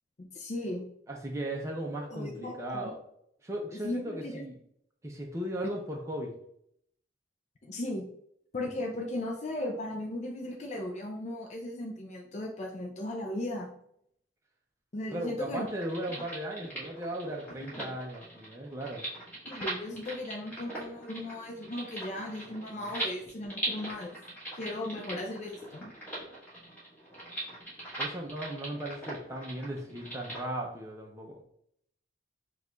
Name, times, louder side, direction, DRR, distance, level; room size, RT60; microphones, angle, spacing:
voice 1, 0.2-0.8 2.1-2.9 3.8-4.4 7.6-8.1 8.5-13.7 14.9-15.7 16.2-16.3 17.6-18.0 19.5-24.2 24.5-25.9, left 1 dB, 40° left, 1 dB, 0.4 m, -37 dB
voice 2, 1.1-3.0 3.4-4.6 5.0-6.3 15.1-19.1 28.0-31.4, right 1 dB, 15° right, 0 dB, 0.5 m, -37 dB
sound 1, 15.7-30.4, right 1 dB, 10° left, 1.4 m, -41 dB
4.6 x 2.3 x 3.8 m, 0.70 s
head